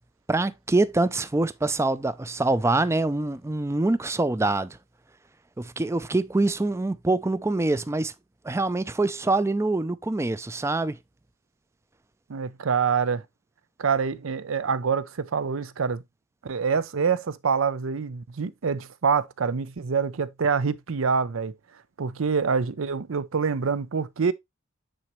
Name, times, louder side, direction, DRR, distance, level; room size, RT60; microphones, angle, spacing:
voice 1, 0.3-4.8 5.6-8.1 8.4-11.0, right 2 dB, 15° right, 0.4 m, -25 dB
voice 2, 12.3-13.2 13.8-16.0 16.4-21.5 22.0-24.3, right 5 dB, 70° right, 0.6 m, -26 dB
8.8 x 4.2 x 3.0 m
head